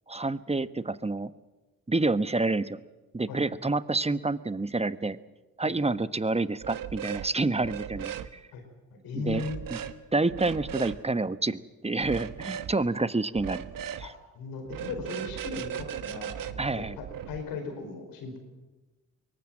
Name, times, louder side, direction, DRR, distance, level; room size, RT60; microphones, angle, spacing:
voice 1, 0.1-1.3 1.9-2.8 3.1-5.2 5.6-8.4 9.1-9.4 9.7-9.8 10.1-13.7 14.0-14.1 16.6-17.0, right 3 dB, 20° right, 14 dB, 1.2 m, -28 dB
sound 1, 6.6-7.3 7.6-8.3 9.3-9.9 10.3-11.0 12.0-12.7 13.3-14.1 14.7-17.4, right 9 dB, 70° right, 1.3 m, -37 dB
voice 2, 9.0-9.6 14.0-18.4, left 4 dB, 85° left, 5 dB, 5.1 m, -37 dB
23.0 x 18.5 x 7.7 m, 1.1 s
supercardioid pair, 50°, 35 cm